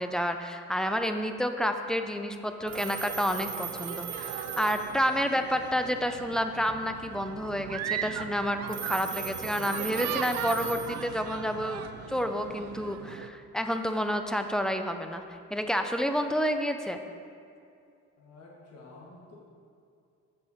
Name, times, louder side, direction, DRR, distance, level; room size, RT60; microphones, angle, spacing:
voice 1, 0.0-11.8 12.1-15.2 15.5-17.0, equal, ahead, 6 dB, 0.4 m, -29 dB
sound 1, 2.6-13.3, right 9 dB, 60° right, 0.4 m, -39 dB
Telephone, 2.7-5.5 8.7-11.5, right 6 dB, 40° right, 0.8 m, -38 dB
voice 2, 5.3-5.8 18.2-19.4, left 2 dB, 55° left, -3 dB, 1.5 m, -51 dB
7.2 x 6.7 x 4.2 m, 2.5 s
cardioid pair, 90°, 30 cm